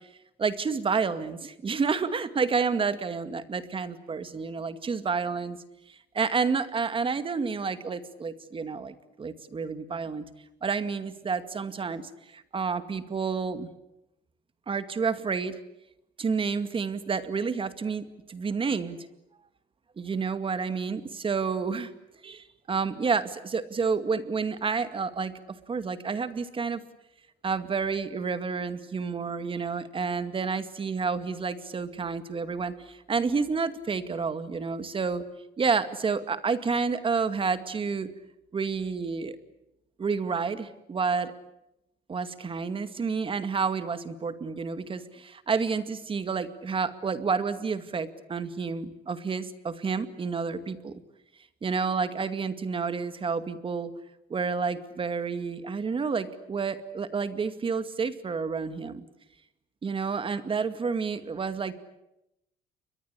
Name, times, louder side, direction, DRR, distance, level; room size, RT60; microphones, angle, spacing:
voice 1, 0.4-5.6 6.1-10.3 10.6-13.7 14.7-15.6 16.2-19.0 20.0-21.9 22.2-26.8 27.4-35.2 35.6-38.1 38.5-39.4 40.0-41.3 42.1-51.0 51.6-53.9 54.3-59.0 59.8-61.7, right 5 dB, 30° right, 11 dB, 2.2 m, -30 dB
29.5 x 23.5 x 8.4 m, 0.88 s
cardioid pair, 110°, 17 cm